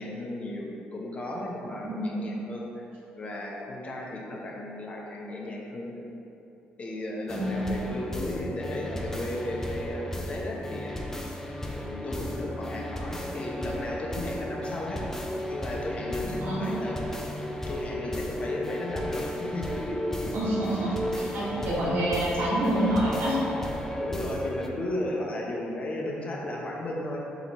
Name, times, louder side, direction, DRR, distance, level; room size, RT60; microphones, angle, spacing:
voice 1, 0.0-2.9 3.2-6.1 6.8-11.0 11.7-15.0 15.5-17.0 17.7-20.3 23.8-27.2, left 1 dB, 35° left, -2 dB, 0.8 m, -35 dB
voice 2, 1.8-2.3 7.3-7.8 16.4-16.8 20.3-23.4, right 1 dB, 70° right, -7 dB, 1.4 m, -28 dB
sound 1, 7.3-24.7, left 1 dB, 10° left, 0.4 m, -34 dB
3.9 x 3.0 x 4.2 m, 2.9 s
cardioid pair, 90°, 4 cm